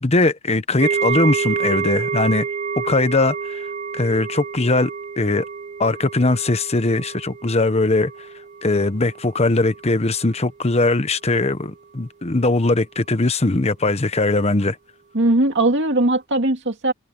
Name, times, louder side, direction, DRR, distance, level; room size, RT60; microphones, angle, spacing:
voice 1, 0.0-2.5 2.8-3.7 3.9-4.9 5.2-5.4 5.8-8.1 8.6-14.8, left 2 dB, 30° left, 1.0 m, -20 dB
sound 1, 0.8-9.9 10.2-10.4 10.9-11.0, right 6 dB, 35° right, 0.9 m, -28 dB
voice 2, 15.1-16.9, right 2 dB, 60° right, 2.4 m, -19 dB
head